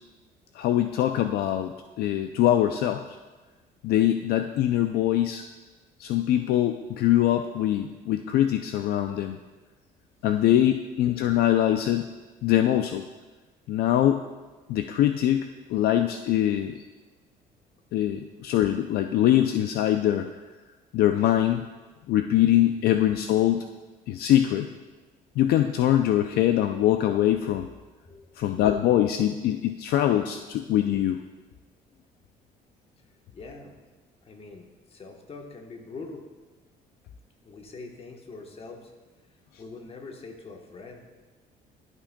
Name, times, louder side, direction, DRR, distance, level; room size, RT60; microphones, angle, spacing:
voice 1, 0.5-3.0 3.8-5.4 6.0-9.4 10.2-12.1 12.4-13.1 13.7-14.2 14.7-16.9 17.9-20.3 20.9-21.7 22.1-23.7 24.1-24.7 25.4-27.7 28.4-31.2, left 12 dB, 70° left, 7 dB, 0.4 m, -23 dB
voice 2, 33.3-33.7 34.2-36.3 37.4-38.9 39.6-41.1, left 3 dB, 35° left, 3 dB, 1.1 m, -43 dB
12.5 x 5.8 x 2.2 m, 1.3 s
cardioid pair, 110°, 17 cm